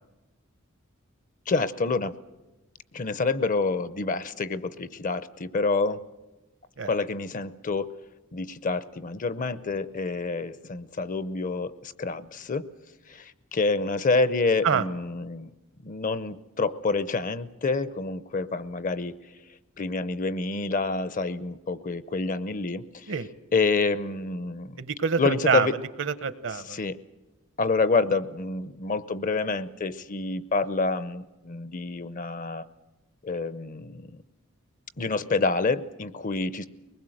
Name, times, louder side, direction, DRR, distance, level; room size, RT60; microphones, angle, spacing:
voice 1, 1.5-2.1 2.9-6.0 6.8-7.9 8.3-12.7 13.1-15.5 15.8-19.1 19.8-22.8 23.5-24.8 25.2-25.8 26.7-27.0 27.6-32.6 33.2-34.2 35.0-36.7, left 3 dB, 40° left, 15 dB, 0.7 m, -27 dB
voice 2, 24.8-25.7 26.0-26.8, right 6 dB, 60° right, 14 dB, 0.9 m, -26 dB
22.5 x 20.0 x 7.8 m, 1.1 s
head